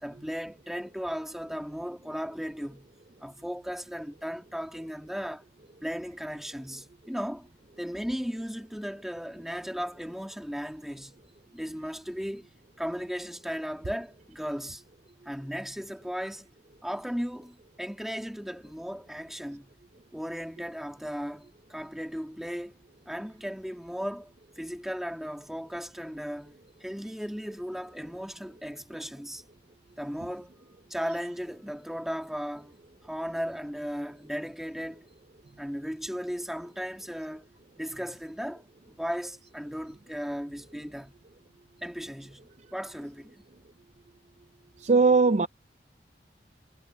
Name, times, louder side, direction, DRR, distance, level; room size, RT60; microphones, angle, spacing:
voice 1, 0.0-2.9 3.2-5.4 5.8-7.5 7.8-11.2 11.5-12.5 12.8-14.8 15.2-16.5 16.8-19.7 20.1-22.8 23.1-26.5 26.8-29.4 30.0-30.5 30.9-32.7 33.0-35.1 35.6-37.4 37.8-41.2 41.8-43.4, equal, ahead, 1.9 m, -36 dB
voice 2, 44.8-45.5, right 4 dB, 40° right, 0.5 m, -20 dB
head